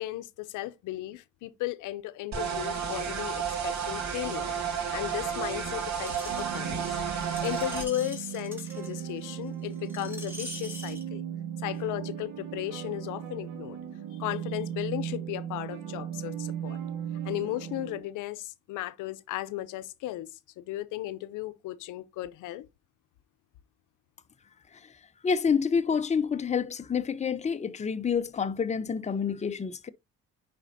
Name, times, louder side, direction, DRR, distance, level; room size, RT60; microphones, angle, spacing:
voice 1, 0.0-4.5 4.9-7.0 7.4-11.2 11.6-13.8 14.2-16.8 17.2-22.7, left 15 dB, 90° left, 0.6 m, -35 dB
sound 1, 2.3-7.8, right 7 dB, 65° right, 2.5 m, -32 dB
Screech, 6.1-11.0 11.7-11.8, equal, 5° right, 2.8 m, -44 dB
sound 2, 6.3-18.0, right 9 dB, 90° right, 1.5 m, -37 dB
voice 2, 25.2-29.9, left 6 dB, 25° left, 0.6 m, -28 dB
9.9 x 4.2 x 2.6 m
cardioid pair, 90°, 30 cm